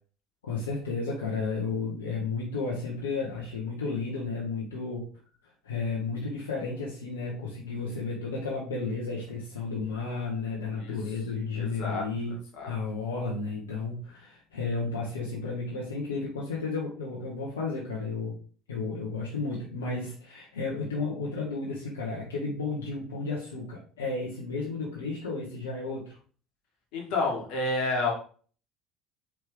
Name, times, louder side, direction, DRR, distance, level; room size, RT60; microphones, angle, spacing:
voice 1, 0.4-5.0 5.6-12.3 12.6-18.3 18.7-26.2, left 4 dB, 75° left, -4 dB, 0.9 m, -33 dB
voice 2, 11.6-12.0 12.3-12.7 26.9-28.1, left 3 dB, 60° left, 0 dB, 1.3 m, -30 dB
4.7 x 3.2 x 3.5 m, 0.41 s
figure-of-eight pair, 60°, 0 cm